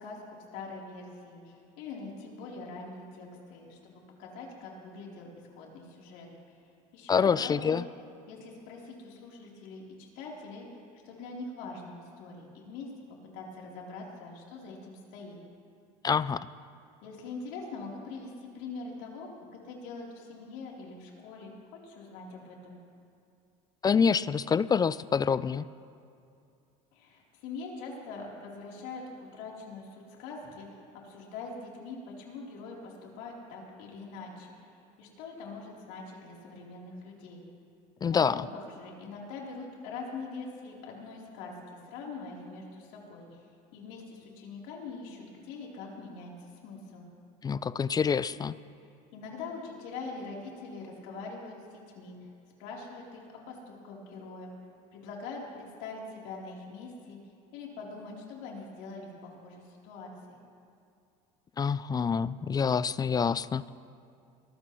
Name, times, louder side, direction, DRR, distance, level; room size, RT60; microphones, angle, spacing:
voice 1, 0.0-5.3 5.6-6.6 6.9-7.8 8.3-12.9 13.3-15.4 17.0-22.8 26.9-29.0 29.3-37.4 38.1-47.1 49.1-52.2 52.6-54.5 54.9-57.2 57.5-60.4, left 3 dB, 70° left, -2 dB, 3.5 m, -43 dB
voice 2, 7.1-7.8 16.0-16.5 23.8-25.6 38.0-38.5 47.4-48.5 61.6-63.7, left 6 dB, 20° left, 18 dB, 0.3 m, -26 dB
22.5 x 15.0 x 3.1 m, 2.5 s
supercardioid pair, 95°, 18 cm